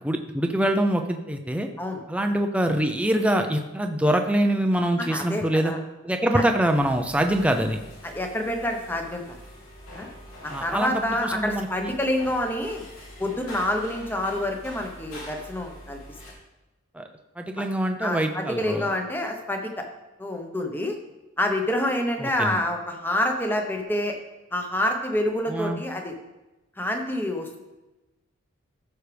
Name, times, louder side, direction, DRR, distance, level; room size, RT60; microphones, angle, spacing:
voice 1, 0.0-1.7 2.1-5.7 6.0-7.8 10.5-10.9 11.2-11.9 16.9-17.1 17.4-18.9 22.2-22.6 25.5-25.8, right 1 dB, 5° right, 5 dB, 0.5 m, -24 dB
voice 2, 5.0-5.8 6.3-6.4 8.0-9.4 9.9-10.1 10.4-12.9 13.2-16.0 17.6-17.7 18.0-19.8 20.2-20.9 21.4-24.1 24.5-26.1 26.8-27.6, left 1 dB, 10° left, 3 dB, 1.0 m, -27 dB
sound 1, 6.7-16.3, equal, 75° left, 2.9 m, -44 dB
14.5 x 6.4 x 3.4 m, 1.1 s
head